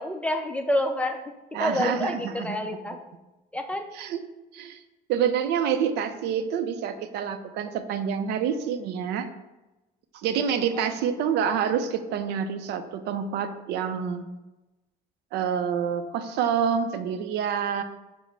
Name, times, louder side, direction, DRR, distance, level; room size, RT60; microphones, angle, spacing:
voice 1, 0.0-1.3 1.6-3.0 3.5-3.9 10.7-11.0, left 1 dB, 5° left, 5 dB, 0.4 m, -28 dB
voice 2, 1.5-2.6 3.9-4.2 4.5-4.8 5.1-9.3 10.1-14.2 15.3-17.8, right 7 dB, 80° right, 9 dB, 0.4 m, -27 dB
5.6 x 2.0 x 4.5 m, 1.0 s
cardioid pair, 110°, 17 cm